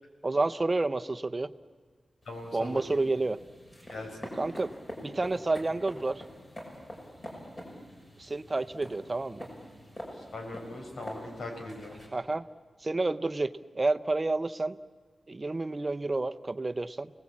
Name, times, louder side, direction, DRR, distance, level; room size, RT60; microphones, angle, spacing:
voice 1, 0.2-1.5 2.5-3.4 4.3-4.7 5.0-6.2 8.2-9.5 12.1-12.4 12.8-14.8 15.3-17.1, right 2 dB, 30° right, 9 dB, 0.7 m, -30 dB
sound 1, 2.2-12.1, equal, 30° left, 6.3 m, -46 dB
voice 2, 2.3-2.8 3.9-4.3 10.3-11.9, left 2 dB, 85° left, 2 dB, 5.4 m, -40 dB
30.0 x 19.0 x 8.5 m, 1.5 s
wide cardioid pair, 125°, 0 cm